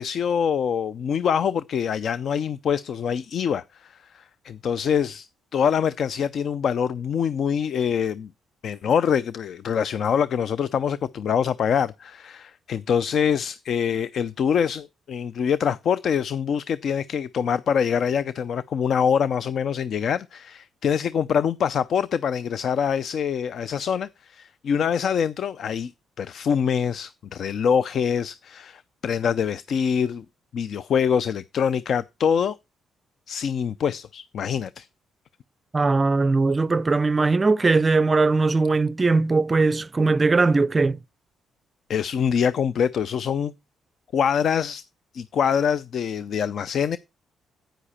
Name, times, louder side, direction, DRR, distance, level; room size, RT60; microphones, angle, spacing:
voice 1, 0.0-5.3 5.5-8.3 8.6-25.9 26.2-30.2 30.5-32.6 33.3-34.9 41.9-43.5 44.1-44.8 45.1-47.0, left 7 dB, 60° left, 0.5 m, -24 dB
voice 2, 35.7-41.0, right 3 dB, 25° right, 0.5 m, -20 dB
9.9 x 9.1 x 4.2 m
cardioid pair, 90°, 0 cm